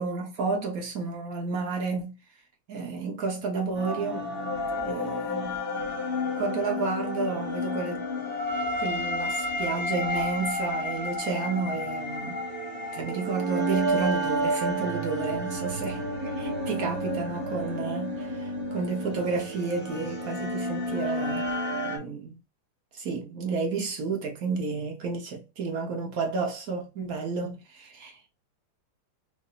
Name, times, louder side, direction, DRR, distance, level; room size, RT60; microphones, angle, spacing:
voice 1, 0.0-2.2 2.7-4.3 4.8-5.9 6.4-8.0 8.8-12.4 12.9-21.5 21.8-22.4 22.9-28.2, right 4 dB, 55° right, 1.1 m, -31 dB
sound 1, 3.7-22.0, equal, 5° left, 1.3 m, -31 dB
4.7 x 2.7 x 2.4 m
omnidirectional pair, 2.3 m